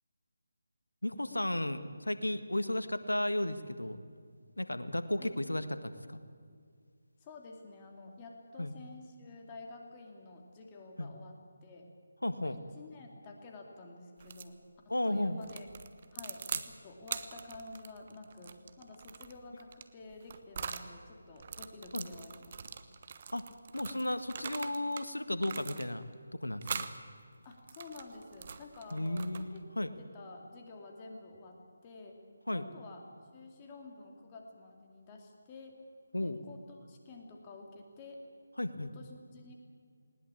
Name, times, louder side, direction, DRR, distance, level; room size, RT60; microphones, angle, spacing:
voice 1, 1.0-4.0 4.6-6.2 8.6-8.7 11.0-11.1 12.2-12.6 14.9-15.4 21.9-22.1 23.3-23.4 23.7-26.9 28.9-29.9 32.5-32.7 36.1-36.4 38.6-38.9, left 1 dB, 85° left, 11 dB, 1.6 m, -34 dB
voice 2, 7.2-11.9 12.4-15.7 16.1-22.5 27.4-29.6 30.0-32.2 32.5-33.0 33.3-35.8 36.2-38.3 38.9-39.5, left 3 dB, 20° left, 2 dB, 2.6 m, -50 dB
sound 1, 14.2-14.5 15.4-16.7 17.0-20.9 21.4-25.1 25.4-26.1 26.6-27.0 27.5-29.6, right 6 dB, 40° right, 1.1 m, -43 dB
19.5 x 19.0 x 8.6 m, 2.2 s
figure-of-eight pair, 155°, 0 cm